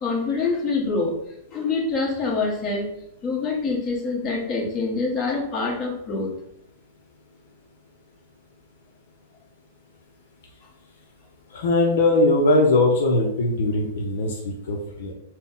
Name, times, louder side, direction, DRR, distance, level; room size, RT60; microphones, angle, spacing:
voice 1, 0.0-1.2 1.5-2.9 3.2-6.3 10.6-10.7, left 3 dB, 30° left, -2 dB, 1.2 m, -25 dB
voice 2, 11.5-15.1, left 2 dB, 75° left, 1 dB, 0.6 m, -20 dB
4.0 x 2.1 x 3.7 m, 0.75 s
hypercardioid pair, 125°, 0 cm